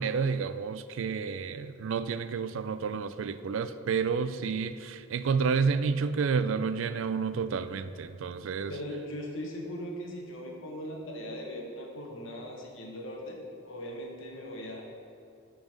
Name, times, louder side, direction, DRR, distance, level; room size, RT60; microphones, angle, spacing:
voice 1, 0.0-8.7, right 5 dB, 65° right, 12 dB, 0.4 m, -30 dB
voice 2, 8.7-14.8, equal, 65° left, 0 dB, 1.1 m, -39 dB
8.8 x 3.9 x 6.3 m, 2.5 s
head